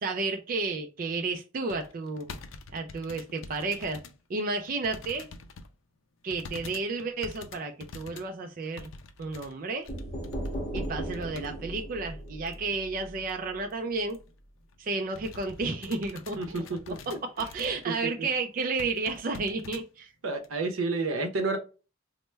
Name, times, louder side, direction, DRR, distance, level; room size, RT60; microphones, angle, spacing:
voice 1, 0.0-2.4 2.7-4.0 4.3-5.3 6.2-8.9 9.2-9.9 10.7-14.2 14.8-16.4 17.4-20.1, right 3 dB, 45° right, 4 dB, 0.3 m, -32 dB
sound 1, 1.7-4.2 4.5-5.7 6.3-11.5 11.8-11.9 12.5-12.8 13.2-13.3 13.6-13.7 14.1-14.3 14.7-18.0 18.3-18.4 18.8-19.8 20.4-20.5, left 4 dB, 70° left, 0.4 m, -46 dB
sound 2, 9.9-13.6, right 1 dB, 35° left, 0.9 m, -37 dB
voice 2, 16.4-17.5 17.8-18.3 20.2-21.6, right 3 dB, 85° right, 5 dB, 0.7 m, -31 dB
3.2 x 2.1 x 3.1 m, 0.33 s
head